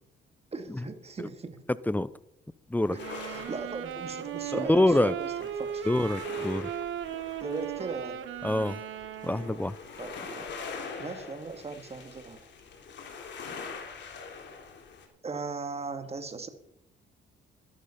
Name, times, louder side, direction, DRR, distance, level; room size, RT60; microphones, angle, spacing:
voice 1, 0.5-1.6 2.9-5.9 7.4-8.2 10.0-10.5 11.0-12.5 15.2-16.5, right 4 dB, 30° right, 8 dB, 1.9 m, -38 dB
sound 1, 2.8-15.1, left 5 dB, 65° left, 3.4 m, -44 dB
sound 2, 2.9-9.8, right 9 dB, 80° right, 1.4 m, -37 dB
voice 2, 4.5-5.1 5.9-6.7 8.4-8.8 9.3-9.7, left 1 dB, 10° left, 18 dB, 0.6 m, -25 dB
13.0 x 12.0 x 5.6 m, 0.74 s
cardioid pair, 90°, 20 cm